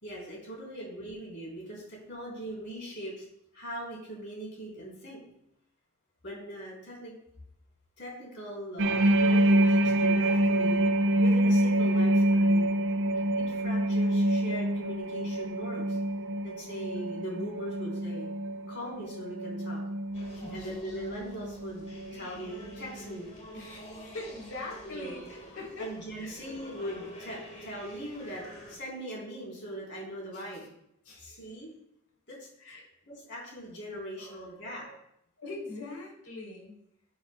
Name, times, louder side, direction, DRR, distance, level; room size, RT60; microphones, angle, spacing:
voice 1, 0.0-3.3 3.5-5.2 6.2-7.1 8.0-10.9 11.2-12.7 13.4-16.0 16.4-18.3 18.7-19.8 20.5-21.9 22.1-23.3 24.8-25.2 25.8-28.4 28.7-30.6 31.2-31.7 32.3-32.4 33.1-34.8, equal, 55° left, -3 dB, 3.7 m, -40 dB
sound 1, 8.8-22.3 22.6-22.9, right 1 dB, 55° right, 0.6 m, -26 dB
sound 2, 20.1-28.8, equal, 30° left, 2.2 m, -48 dB
voice 2, 20.3-20.7 23.5-26.3 30.3-30.6 31.0-31.6 32.6-32.8 34.2-35.0 35.4-36.8, left 2 dB, 85° left, -2 dB, 3.2 m, -43 dB
13.5 x 7.3 x 2.2 m, 0.77 s
head